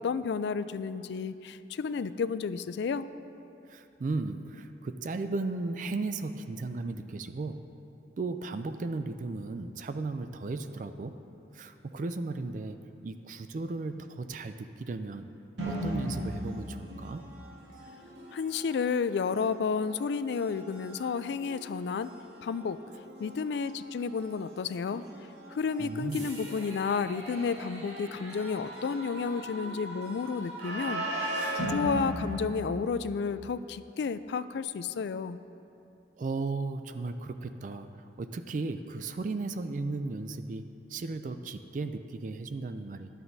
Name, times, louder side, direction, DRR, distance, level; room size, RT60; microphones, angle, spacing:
voice 1, 0.0-3.1 18.3-22.8 23.2-25.0 25.5-35.4, left 5 dB, 65° left, 13 dB, 0.3 m, -31 dB
voice 2, 3.7-7.7 8.2-11.2 11.5-15.3 15.6-17.2 25.8-26.3 36.2-43.1, right 3 dB, 45° right, 9 dB, 0.3 m, -35 dB
sound 1, 15.6-33.3, right 1 dB, 75° right, 2.2 m, -39 dB
14.5 x 11.5 x 2.7 m, 2.8 s
head